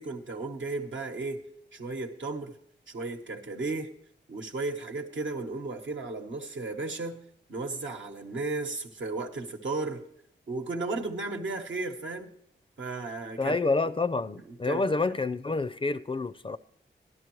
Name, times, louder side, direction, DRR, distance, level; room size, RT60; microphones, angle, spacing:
voice 1, 0.0-1.4 1.7-2.5 2.9-3.9 4.3-7.2 7.5-10.0 10.5-12.3 12.8-13.6 14.7-15.2, right 3 dB, 80° right, 1.1 m, -34 dB
voice 2, 13.4-16.6, left 3 dB, 30° left, 0.4 m, -28 dB
13.5 x 11.0 x 3.1 m
cardioid pair, 50°, 19 cm